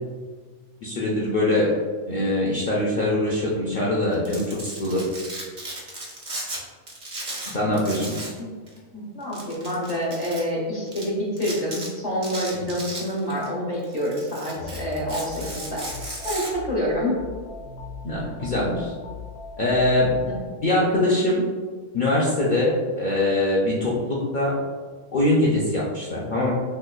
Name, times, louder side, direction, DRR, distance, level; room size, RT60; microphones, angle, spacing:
voice 1, 0.8-1.8 2.1-5.0 7.5-8.1 12.5-12.7 18.0-18.9 19.6-20.2 20.6-21.4 21.9-24.6 25.1-26.5, left 1 dB, 75° left, -5 dB, 0.4 m, -23 dB
Domestic sounds home sounds, 4.1-6.6 6.9-8.4 8.7-8.8 9.3-10.4 10.9-11.0 11.4-11.9 12.2-13.5 13.8-16.5, right 2 dB, 40° right, 0.6 m, -35 dB
voice 2, 8.9-17.1, equal, 35° left, -5 dB, 0.9 m, -27 dB
sound 1, 14.6-20.4, left 4 dB, 60° left, 0.8 m, -39 dB
3.4 x 2.9 x 2.3 m, 1.5 s
omnidirectional pair, 1.4 m